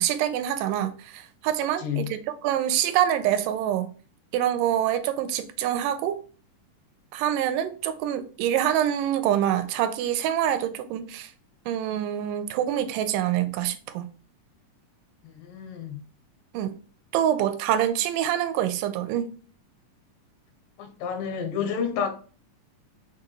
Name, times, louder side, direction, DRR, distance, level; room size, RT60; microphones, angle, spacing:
voice 1, 0.0-3.9 4.3-6.2 7.1-11.3 11.7-14.1 16.5-16.7 17.1-19.3, right 11 dB, 90° right, 2.2 m, -26 dB
voice 2, 1.8-2.1 15.3-16.0 20.8-22.1, left 7 dB, 90° left, 2.5 m, -30 dB
6.1 x 2.3 x 3.0 m
omnidirectional pair, 3.7 m